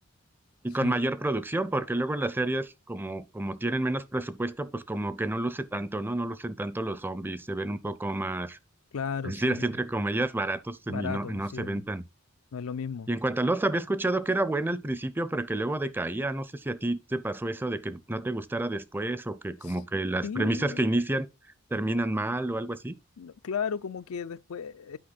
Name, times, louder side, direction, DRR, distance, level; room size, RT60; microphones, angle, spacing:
voice 1, 0.6-8.6 9.2-12.0 13.1-21.3 21.7-22.9, right 2 dB, 10° right, 0.5 m, -29 dB
voice 2, 8.9-9.7 10.9-11.8 12.5-13.1 19.6-19.8 20.2-21.0 23.2-25.0, left 6 dB, 90° left, 0.4 m, -35 dB
8.8 x 5.1 x 4.0 m
head